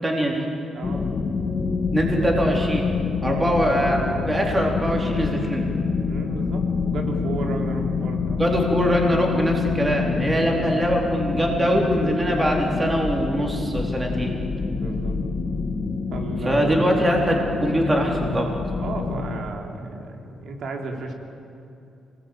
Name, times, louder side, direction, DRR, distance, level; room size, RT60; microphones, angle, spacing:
voice 1, 0.0-0.5 1.9-2.9 3.2-4.0 4.3-5.7 8.4-14.3 16.4-18.5, equal, 15° right, 0 dB, 4.1 m, -22 dB
voice 2, 0.7-1.1 3.2-3.4 6.1-8.4 14.7-15.2 16.1-16.6 18.8-21.1, right 3 dB, 60° right, 2 dB, 3.6 m, -33 dB
sound 1, 0.8-19.4, left 5 dB, 35° left, 1.6 m, -27 dB
26.5 x 20.5 x 9.0 m, 2.6 s
cardioid pair, 125°, 0 cm